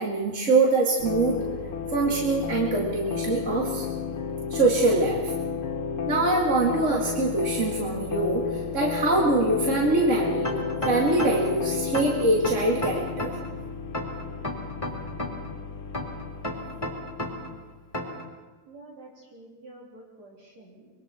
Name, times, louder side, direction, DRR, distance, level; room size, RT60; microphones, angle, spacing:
voice 1, 0.0-1.4 1.9-3.9 4.5-5.3 6.1-10.5 10.8-13.3, right 2 dB, 25° right, -3 dB, 2.1 m, -24 dB
sound 1, 1.0-17.7, left 6 dB, 50° left, 2.1 m, -32 dB
sound 2, 10.4-11.5 11.9-13.5 13.9-15.5 15.9-17.5 17.9-18.3, left 1 dB, 10° left, 3.0 m, -32 dB
voice 2, 18.7-20.9, right 2 dB, 60° right, -5 dB, 4.7 m, -48 dB
25.0 x 23.0 x 4.5 m, 1.3 s
omnidirectional pair, 3.5 m